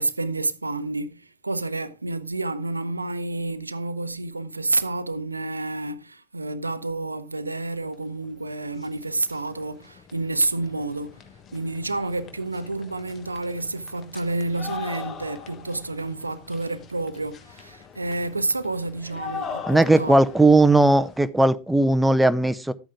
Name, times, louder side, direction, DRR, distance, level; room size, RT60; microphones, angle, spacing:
voice 1, 0.0-11.2 11.5-20.2, right 2 dB, 85° right, 0.8 m, -29 dB
sound 1, 8.2-8.3 8.6-21.3, left 6 dB, 35° left, 1.4 m, -41 dB
voice 2, 19.7-22.7, right 2 dB, 5° right, 0.7 m, -18 dB
13.0 x 8.8 x 3.6 m
figure-of-eight pair, 80°, 0 cm